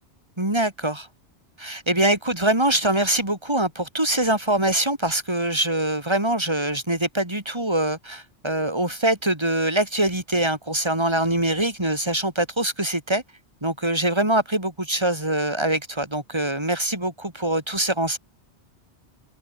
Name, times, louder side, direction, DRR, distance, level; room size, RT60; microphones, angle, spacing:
voice 1, 0.4-1.1 1.6-13.2 13.6-18.2, right 1 dB, 25° right, 4.0 m, -23 dB
omnidirectional pair, 1.2 m